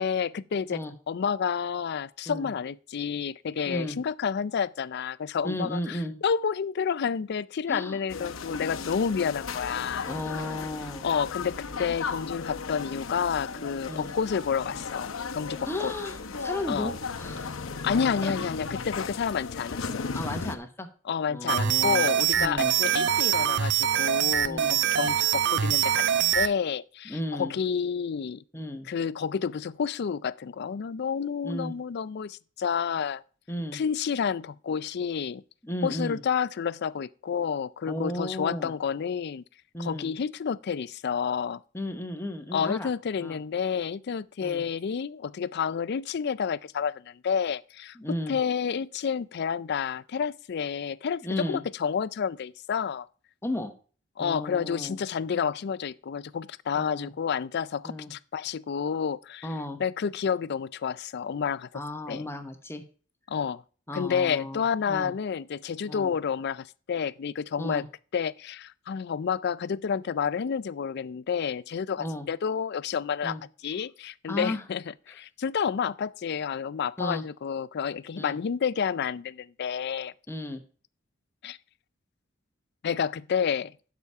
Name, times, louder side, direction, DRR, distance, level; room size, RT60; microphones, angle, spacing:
voice 1, 0.0-10.1 11.0-15.1 15.3-15.9 16.7-16.9 17.8-20.1 21.0-24.6 24.9-28.4 28.9-33.2 33.7-35.4 35.8-39.4 39.8-41.6 42.5-53.1 54.2-59.5 59.8-61.8 62.1-62.2 63.3-63.6 63.9-67.8 68.1-73.4 73.6-80.1 81.4-81.6 82.8-83.7, left 7 dB, 55° left, 0.4 m, -30 dB
voice 2, 3.7-4.0 5.4-6.1 7.7-8.0 10.1-11.0 13.9-14.1 15.7-17.6 18.2-18.3 20.1-20.9 21.3-22.1 22.4-22.7 24.5-24.8 27.1-27.5 28.5-28.9 31.4-31.7 33.5-33.8 35.6-36.2 37.9-38.7 39.7-40.1 41.7-42.9 43.2-43.4 44.4-44.6 48.0-48.4 51.2-51.6 53.4-53.7 54.2-55.0 56.7-57.1 57.8-58.1 59.4-59.8 61.7-62.8 63.9-64.6 64.9-65.1 65.9-66.1 67.6-67.9 72.0-72.3 73.2-73.4 74.3-74.6 77.0-77.2 78.2-78.4 80.3-80.6, left 1 dB, 10° left, 1.0 m, -34 dB
sound 1, 8.1-20.6, left 5 dB, 85° left, 0.9 m, -36 dB
sound 2, 21.5-26.5, right 9 dB, 60° right, 0.6 m, -24 dB
11.5 x 4.9 x 5.5 m
head